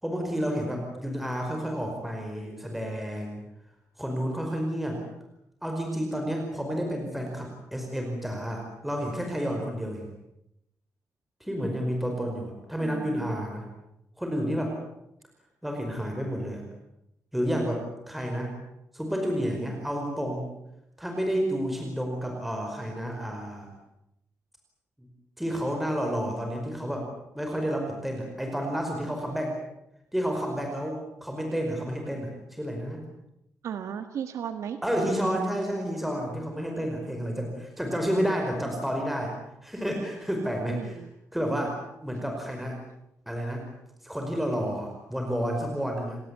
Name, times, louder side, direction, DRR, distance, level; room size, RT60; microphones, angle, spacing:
voice 1, 0.0-3.4 4.0-5.0 5.6-10.1 11.4-13.7 14.2-14.8 15.6-16.7 17.3-18.5 18.9-20.5 21.0-23.7 25.0-25.1 25.4-27.1 27.3-29.6 30.1-33.0 34.8-39.3 39.6-41.0 41.3-42.8 43.3-43.7 44.0-46.2, equal, 5° right, 2 dB, 5.1 m, -30 dB
voice 2, 12.8-13.3 33.6-34.8 40.7-41.1, right 8 dB, 75° right, 8 dB, 1.6 m, -35 dB
29.0 x 18.0 x 8.4 m, 0.83 s
wide cardioid pair, 150°, 5 cm